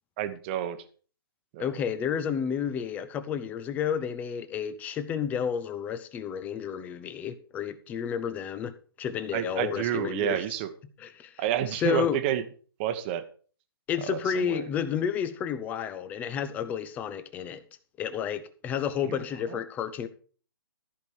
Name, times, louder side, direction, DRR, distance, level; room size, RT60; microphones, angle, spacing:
voice 1, 0.2-0.8 1.5-1.8 9.3-10.7 11.4-12.4 12.8-13.2 14.0-14.7 19.0-19.6, right 11 dB, 25° right, 1.1 m, -30 dB
voice 2, 1.6-10.4 11.0-11.3 11.8-12.2 13.9-17.6 18.0-20.1, left 8 dB, 10° left, 0.7 m, -31 dB
14.0 x 5.2 x 6.5 m
hypercardioid pair, 150°, 13 cm